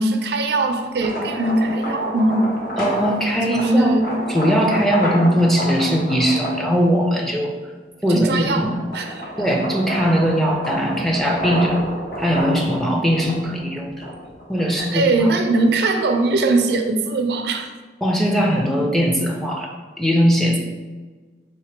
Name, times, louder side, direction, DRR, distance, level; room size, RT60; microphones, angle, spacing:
voice 1, 0.0-2.5 3.5-4.1 8.1-9.3 11.6-11.7 14.7-17.7, right 2 dB, 65° right, 5 dB, 0.4 m, -21 dB
sound 1, 0.8-7.4 8.0-15.1, equal, 55° left, 1.0 m, -29 dB
voice 2, 2.8-4.0 4.3-7.5 8.0-8.8 9.4-11.8 12.2-14.1 14.5-15.3 18.0-19.7 20.0-20.6, equal, ahead, -1 dB, 0.4 m, -19 dB
3.4 x 2.9 x 4.5 m, 1.3 s
head